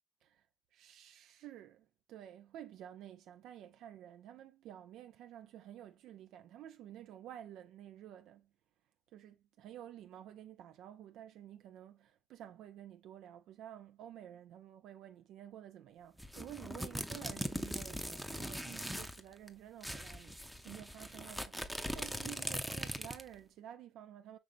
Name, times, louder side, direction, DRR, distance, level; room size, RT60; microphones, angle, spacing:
voice 1, 0.7-8.5 9.1-24.4, right 11 dB, 85° right, 0.3 m, -51 dB
sound 1, 16.2-19.2 19.5-19.6 19.8-23.3, equal, ahead, 0.6 m, -41 dB
5.1 x 3.3 x 2.5 m
cardioid pair, 90°, 0 cm